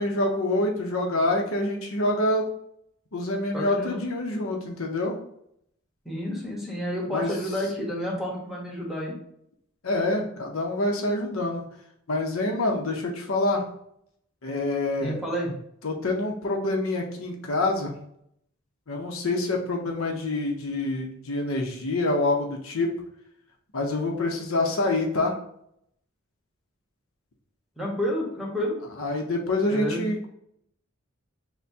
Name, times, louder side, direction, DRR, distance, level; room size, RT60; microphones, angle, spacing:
voice 1, 0.0-2.5 3.1-5.2 7.1-7.4 9.8-11.6 12.1-13.6 14.4-15.2 15.8-18.0 18.9-22.9 23.7-25.3 29.0-30.3, left 2 dB, 80° left, 1 dB, 0.8 m, -26 dB
voice 2, 3.5-4.0 4.3-4.7 6.0-9.2 15.0-15.5 27.8-28.8 29.7-30.1, equal, ahead, -4 dB, 1.2 m, -30 dB
6.4 x 2.2 x 2.8 m, 0.72 s
head